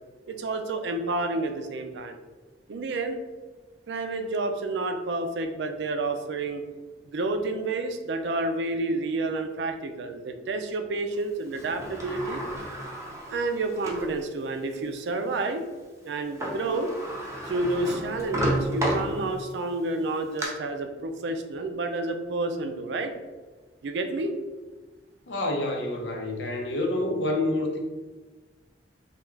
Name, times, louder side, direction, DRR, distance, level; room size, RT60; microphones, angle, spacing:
voice 1, 0.3-2.2 2.7-3.2 3.9-6.6 7.0-12.4 13.3-15.7 16.0-16.9 17.5-23.1 23.8-24.3, right 2 dB, 70° right, 6 dB, 0.4 m, -29 dB
Sliding door, 11.5-14.1 14.7-14.8 16.1-16.2 16.4-19.6 20.0-20.5, right 1 dB, 15° right, 0.5 m, -32 dB
voice 2, 25.3-27.8, left 1 dB, 80° left, 2 dB, 0.6 m, -28 dB
3.4 x 2.4 x 3.1 m, 1.3 s
head